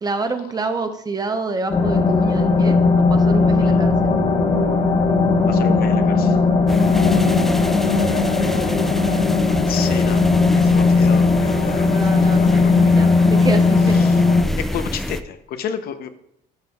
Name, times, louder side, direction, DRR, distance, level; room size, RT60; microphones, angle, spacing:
voice 1, 0.0-3.9 7.7-9.3 11.6-14.0, right 3 dB, 25° right, 8 dB, 0.7 m, -28 dB
sound 1, 1.7-14.4, left 4 dB, 40° left, 1.3 m, -17 dB
voice 2, 5.5-6.4 9.7-13.0 13.9-14.2 14.6-16.1, left 8 dB, 65° left, 9 dB, 0.7 m, -31 dB
sound 2, 6.7-15.2, left 1 dB, ahead, 0.3 m, -28 dB
11.0 x 5.9 x 2.3 m, 0.78 s
cardioid pair, 110°, 17 cm